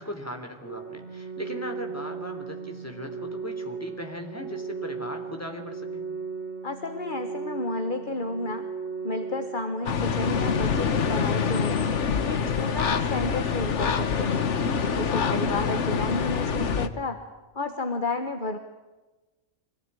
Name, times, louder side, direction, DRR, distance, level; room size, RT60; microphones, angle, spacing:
voice 1, 0.0-6.0 15.3-15.7, left 1 dB, 10° left, 4 dB, 3.5 m, -38 dB
Organ, 0.6-11.6, right 5 dB, 60° right, 2.4 m, -37 dB
voice 2, 6.6-8.7 9.0-11.8 12.2-14.4 15.0-17.2 17.5-18.6, left 2 dB, 40° left, 6 dB, 1.6 m, -31 dB
sound 1, 9.9-16.9, left 6 dB, 65° left, 1.5 m, -26 dB
24.5 x 18.0 x 10.0 m, 1.2 s
omnidirectional pair, 1.3 m